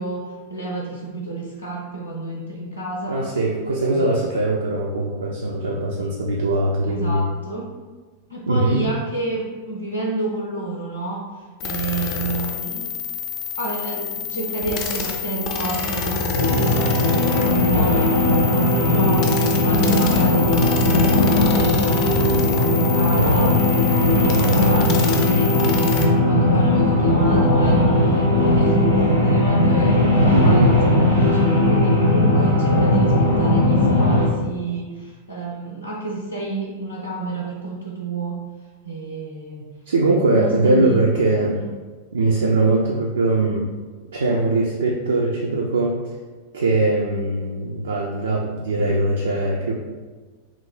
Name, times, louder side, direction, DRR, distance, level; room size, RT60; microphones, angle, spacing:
voice 1, 0.0-3.2 3.9-4.2 6.8-7.7 8.3-11.2 11.6-13.0 13.6-22.2 22.5-23.6 23.9-38.4 38.8-39.6 40.2-41.0 41.5-41.7, right 3 dB, 90° left, -4 dB, 0.5 m, -29 dB
voice 2, 3.1-7.3 8.5-8.9 30.3-30.8 39.9-41.6 42.1-43.7 44.1-46.1 46.5-49.7, right 2 dB, 70° right, 0 dB, 0.3 m, -21 dB
sound 1, 11.6-26.1, left 5 dB, 40° left, 0.5 m, -28 dB
sound 2, 16.3-34.3, left 2 dB, 90° right, 0.7 m, -18 dB
3.0 x 2.1 x 3.9 m, 1.4 s
figure-of-eight pair, 90°, 0 cm